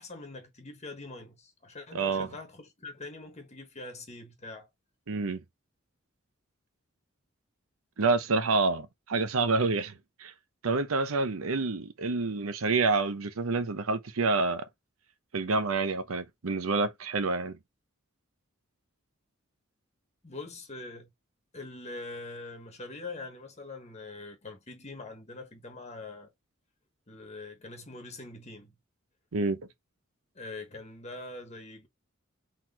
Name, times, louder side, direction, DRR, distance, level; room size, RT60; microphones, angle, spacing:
voice 1, 0.0-4.7 20.2-21.1 21.5-26.3 27.1-28.7 30.3-31.9, left 2 dB, 30° left, 1.3 m, -43 dB
voice 2, 1.9-2.3 5.1-5.4 8.0-9.9 10.2-10.3 10.6-14.6 15.3-17.6 29.3-29.6, right 3 dB, 85° right, 0.8 m, -28 dB
4.4 x 4.1 x 2.9 m
head